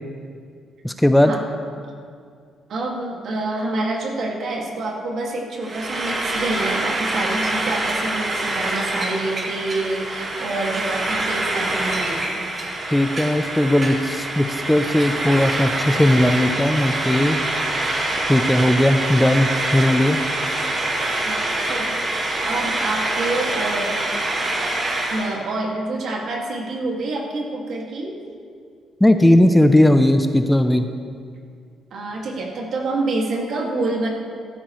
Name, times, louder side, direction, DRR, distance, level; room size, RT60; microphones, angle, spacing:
voice 1, 0.8-1.3 12.9-17.4 18.3-20.2 29.0-30.9, left 1 dB, 5° left, 7 dB, 0.6 m, -17 dB
voice 2, 2.7-12.5 21.2-23.9 25.1-28.2 31.9-34.1, right 2 dB, 65° right, -1 dB, 2.1 m, -27 dB
Frying (food), 5.6-25.3, right 2 dB, 35° right, 2.1 m, -25 dB
14.0 x 12.5 x 3.2 m, 2.2 s
cardioid pair, 90°, 0 cm